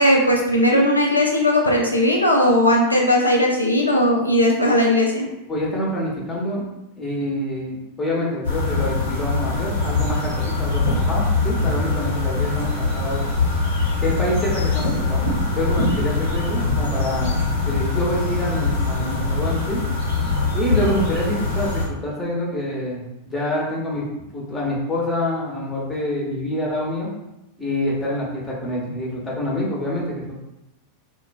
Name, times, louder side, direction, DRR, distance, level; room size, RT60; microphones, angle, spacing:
voice 1, 0.0-5.3, left 1 dB, 90° left, -1 dB, 0.4 m, -18 dB
voice 2, 5.5-6.7 7.0-13.2 14.0-17.4 17.6-19.8 20.5-24.1 24.3-27.1 27.6-30.4, left 1 dB, 15° left, -5 dB, 0.9 m, -26 dB
sound 1, 8.4-21.9, left 3 dB, 65° left, 0.9 m, -23 dB
2.2 x 2.2 x 2.5 m, 0.91 s
figure-of-eight pair, 90°, 0 cm